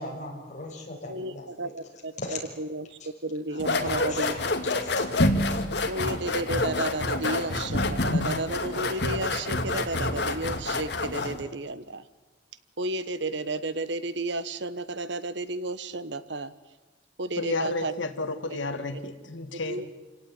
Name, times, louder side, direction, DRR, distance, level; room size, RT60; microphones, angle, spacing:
voice 1, 0.0-1.7 2.2-2.4 3.5-5.1, left 2 dB, 40° left, 0 dB, 6.7 m, -38 dB
voice 2, 1.1-4.3 5.9-12.1 12.8-16.5 17.2-17.9 18.5-18.6 18.9-19.0 19.5-19.9, right 2 dB, 65° right, 14 dB, 1.3 m, -32 dB
sound 1, 3.6-11.4, left 2 dB, 60° left, 2.5 m, -27 dB
voice 3, 17.4-19.8, left 2 dB, 85° left, 8 dB, 1.9 m, -31 dB
28.5 x 17.5 x 9.6 m, 1.3 s
head